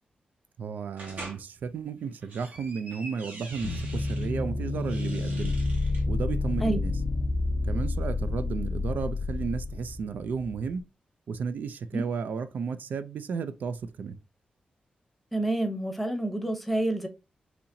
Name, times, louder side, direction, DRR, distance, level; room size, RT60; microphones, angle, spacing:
voice 1, 0.6-5.6 6.1-6.9 7.7-10.8 11.3-14.2, right 5 dB, 80° right, 0.4 m, -33 dB
sound 1, 1.0-1.4 2.1-4.3 4.8-6.0, right 2 dB, 65° right, 1.3 m, -44 dB
sound 2, 3.6-10.7, left 3 dB, 55° left, 0.4 m, -29 dB
voice 2, 15.3-17.1, right 1 dB, ahead, 0.7 m, -28 dB
4.1 x 2.8 x 2.6 m
wide cardioid pair, 115°, 3 cm